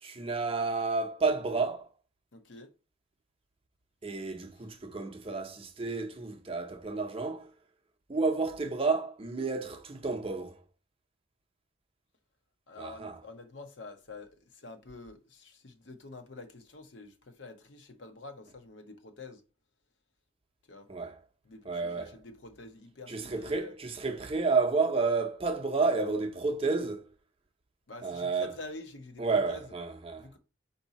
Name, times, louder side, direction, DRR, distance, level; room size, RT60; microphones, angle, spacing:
voice 1, 0.0-1.9 4.0-7.5 8.1-10.6 12.8-13.2 20.9-21.2 21.6-22.1 23.1-27.1 28.0-28.5 29.2-30.4, right 4 dB, 30° right, 0.6 m, -31 dB
voice 2, 2.3-2.7 12.7-19.4 20.7-20.9 21.4-23.7 27.9-29.7 30.2-30.4, left 3 dB, 65° left, 0.9 m, -47 dB
4.8 x 2.7 x 4.0 m
head